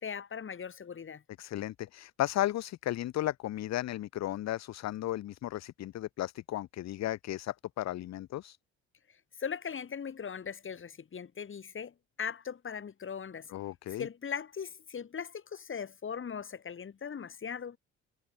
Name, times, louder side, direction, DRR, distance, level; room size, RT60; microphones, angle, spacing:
voice 1, 0.0-1.2 9.4-13.5 13.9-17.8, left 7 dB, 40° left, 1.9 m, -39 dB
voice 2, 1.4-8.6 13.5-14.1, left 14 dB, 55° left, 0.8 m, -35 dB
hypercardioid pair, 50°, 33 cm